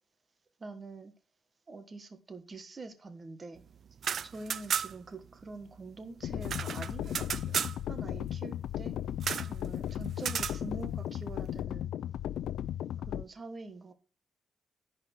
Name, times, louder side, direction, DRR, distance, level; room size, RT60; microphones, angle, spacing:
voice 1, 0.6-1.1 1.7-3.6 4.2-9.0 9.4-11.9 13.1-13.9, right 3 dB, 30° right, 1.3 m, -45 dB
sound 1, 3.9-5.1 5.4-5.5 5.8-7.8 9.2-9.5 10.2-10.6, right 8 dB, 55° right, 0.3 m, -34 dB
sound 2, 6.2-13.2, left 11 dB, 80° left, 0.4 m, -36 dB
10.5 x 4.3 x 5.8 m
cardioid pair, 140°, 0 cm